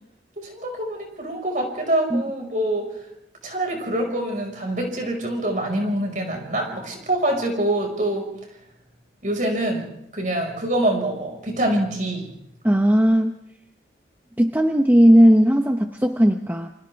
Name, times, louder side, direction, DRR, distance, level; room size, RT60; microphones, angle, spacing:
voice 1, 0.4-3.0 3.4-8.3 9.2-12.3, right 1 dB, 45° right, 2 dB, 5.4 m, -25 dB
voice 2, 12.6-13.4 14.4-16.7, equal, 10° right, 5 dB, 0.7 m, -16 dB
28.5 x 26.0 x 3.5 m, 0.78 s
head